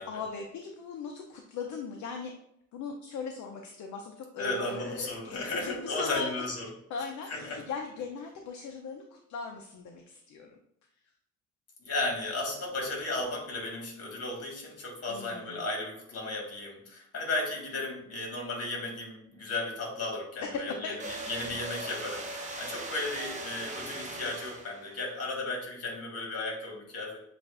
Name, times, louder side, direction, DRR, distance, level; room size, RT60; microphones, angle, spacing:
voice 1, 0.0-2.3 2.7-6.2 6.9-10.6 15.1-15.6 20.8-21.0 22.0-22.2, left 5 dB, 70° left, 2 dB, 0.6 m, -39 dB
voice 2, 4.4-6.7 7.3-7.6 11.8-27.2, left 2 dB, 55° left, 0 dB, 1.6 m, -35 dB
sound 1, 21.0-25.0, right 2 dB, 25° right, 0.9 m, -39 dB
7.4 x 2.5 x 2.5 m, 0.72 s
cardioid pair, 90°, 30 cm